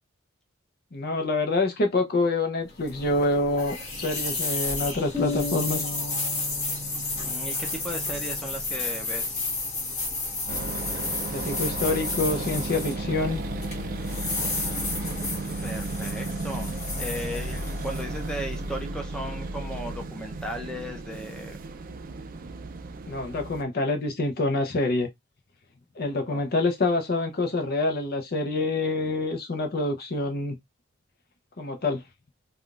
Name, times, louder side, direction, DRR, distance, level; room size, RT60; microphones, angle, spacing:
voice 1, 0.9-5.8 11.3-13.4 23.1-25.1 26.0-30.6 31.6-32.0, left 2 dB, 50° left, 0.7 m, -26 dB
sound 1, 2.7-18.8, left 3 dB, 35° left, 1.3 m, -32 dB
sound 2, 5.1-8.9, left 2 dB, 20° left, 1.1 m, -35 dB
voice 2, 7.2-9.5 15.6-21.6 26.3-26.4, equal, 5° left, 0.6 m, -36 dB
sound 3, 10.5-23.6, right 2 dB, 45° right, 0.4 m, -34 dB
3.5 x 2.3 x 2.4 m
head